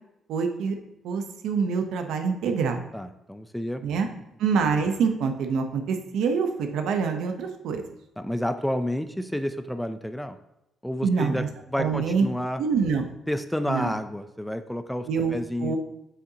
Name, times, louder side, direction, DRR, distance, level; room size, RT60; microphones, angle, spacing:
voice 1, 0.3-0.8 1.0-2.9 3.8-4.1 4.4-7.8 11.0-11.5 11.8-12.3 12.6-13.0 13.7-14.0 15.1-15.3 15.6-15.8, right 5 dB, 85° right, 5 dB, 0.8 m, -25 dB
voice 2, 2.9-3.8 8.2-10.4 10.8-12.6 13.3-15.8, equal, 5° left, 10 dB, 0.5 m, -30 dB
7.4 x 6.7 x 2.8 m, 0.88 s
cardioid pair, 90°, 0 cm